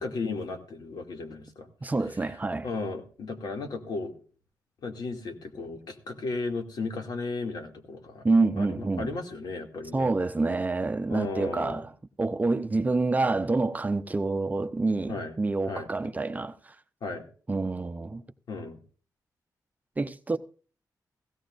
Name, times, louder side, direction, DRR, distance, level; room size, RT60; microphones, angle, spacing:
voice 1, 0.0-2.4 2.6-4.1 4.8-8.3 8.6-10.1 11.1-11.8 15.1-15.3 15.7-15.9 17.0-17.3 18.5-18.8, left 3 dB, 85° left, 2.4 m, -35 dB
voice 2, 1.8-2.7 8.2-9.1 9.9-11.9 12.2-16.8 17.5-18.2 20.0-20.4, right 3 dB, 25° right, 0.6 m, -27 dB
16.5 x 16.0 x 2.5 m
wide cardioid pair, 135°, 7 cm